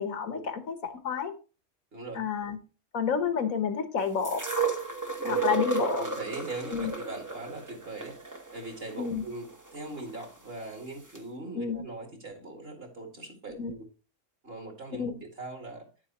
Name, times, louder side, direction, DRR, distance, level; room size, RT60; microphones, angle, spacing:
voice 1, 0.0-1.3 2.1-2.6 2.9-4.4 5.2-6.1 6.7-6.9 9.0-9.2 11.5-11.8 13.5-13.7 15.0-15.1, left 6 dB, 75° left, 1.5 m, -30 dB
voice 2, 1.9-2.2 5.2-5.4 6.0-8.2 8.5-13.8 14.4-15.8, right 2 dB, 45° right, 2.4 m, -41 dB
sound 1, 4.2-10.3 11.2-11.3, right 5 dB, 15° right, 0.8 m, -33 dB
10.5 x 7.4 x 2.9 m
omnidirectional pair, 1.5 m